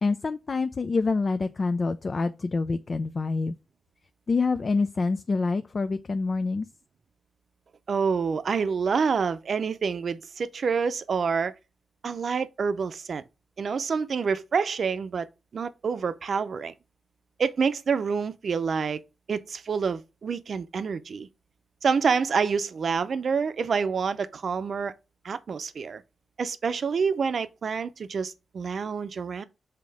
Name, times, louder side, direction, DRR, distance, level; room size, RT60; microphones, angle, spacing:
voice 1, 0.0-3.6 4.3-6.7, left 4 dB, 50° left, 0.5 m, -26 dB
voice 2, 7.9-11.5 12.0-13.2 13.6-15.3 15.5-16.7 17.4-19.0 19.3-21.3 21.8-24.9 25.2-26.0 26.4-29.4, right 5 dB, 65° right, 0.6 m, -27 dB
5.8 x 3.7 x 4.8 m
cardioid pair, 55°, 0 cm